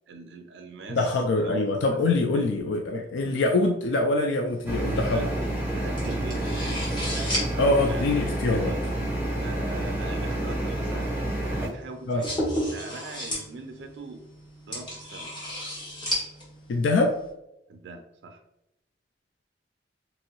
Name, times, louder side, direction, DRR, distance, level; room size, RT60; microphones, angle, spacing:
voice 1, 0.1-1.7 2.3-2.5 4.9-5.3 5.7-8.1 8.6-8.8 9.4-11.1 11.4-12.3 12.6-14.2 14.7-15.3 17.7-18.4, right 3 dB, 70° right, 5 dB, 0.3 m, -41 dB
voice 2, 0.9-5.3 7.6-8.8 12.1-12.2 16.7-17.2, left 2 dB, 85° left, 3 dB, 0.3 m, -24 dB
sound 1, 4.5-17.3, equal, 25° left, 1.0 m, -36 dB
sound 2, 4.7-11.7, right 1 dB, 10° right, 0.6 m, -29 dB
2.9 x 2.7 x 2.8 m, 0.86 s
head